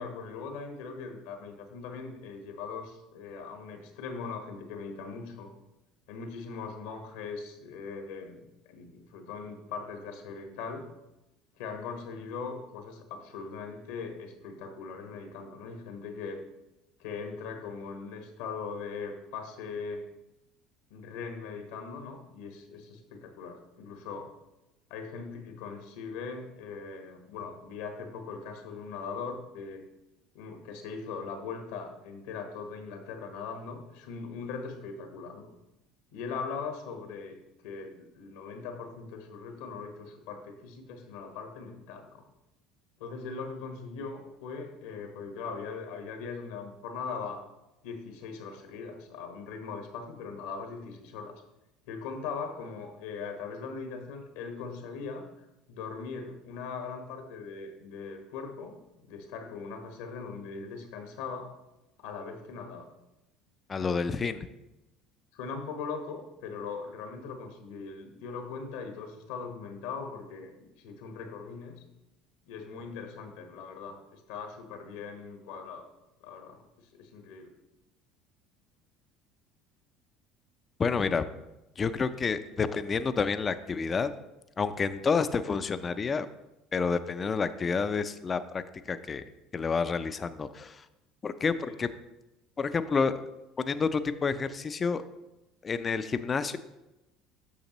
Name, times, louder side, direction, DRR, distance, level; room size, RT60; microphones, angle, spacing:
voice 1, 0.0-5.5 6.1-10.9 11.6-16.4 17.0-20.1 20.9-24.3 24.9-29.8 30.3-35.5 36.1-42.2 43.0-47.4 47.8-51.4 51.9-55.2 55.7-58.8 59.1-61.5 62.0-62.9 65.3-71.8 72.5-75.9 76.2-77.5 91.7-91.8, left 5 dB, 80° left, 5 dB, 1.2 m, -40 dB
voice 2, 63.7-64.5 80.8-81.3 81.8-84.1 84.6-86.3 86.7-89.2 89.5-90.8 91.2-91.9 92.6-93.1 93.6-95.0 95.6-96.6, left 5 dB, 30° left, 12 dB, 0.4 m, -29 dB
8.2 x 6.4 x 3.0 m, 0.96 s
hypercardioid pair, 80°, 0 cm